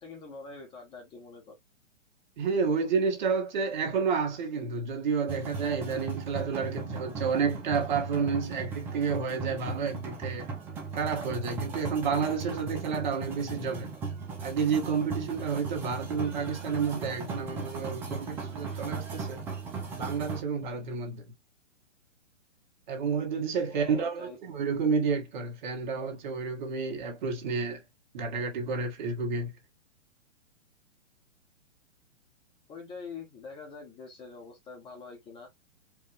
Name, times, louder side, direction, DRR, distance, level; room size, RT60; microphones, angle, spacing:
voice 1, 0.0-1.5 23.7-24.4 32.7-35.5, left 4 dB, 15° left, 1.2 m, -45 dB
voice 2, 2.4-10.5 10.9-13.9 14.4-19.4 20.0-21.2 22.9-27.8 28.1-29.5, right 5 dB, 40° right, 1.5 m, -30 dB
sound 1, 5.3-20.4, right 4 dB, 5° right, 0.4 m, -37 dB
4.7 x 2.4 x 3.4 m
figure-of-eight pair, 120°, 37 cm